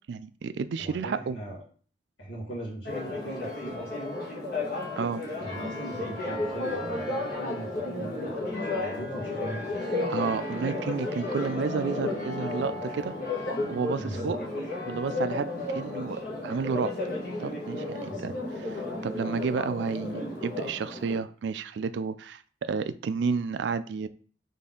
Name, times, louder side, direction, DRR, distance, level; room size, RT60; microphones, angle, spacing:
voice 1, 0.1-1.4 5.0-5.2 10.1-13.1 13.7-14.4 14.8-16.9 17.4-18.3 18.6-24.1, right 5 dB, 65° right, 13 dB, 0.3 m, -31 dB
voice 2, 0.8-1.6 2.2-4.2 5.4-9.8 14.0-14.4 18.0-18.3, right 1 dB, 80° left, -6 dB, 1.8 m, -39 dB
Church bell, 2.8-21.2, left 2 dB, 50° left, 1.4 m, -33 dB
4.2 x 3.4 x 3.7 m, 0.43 s
head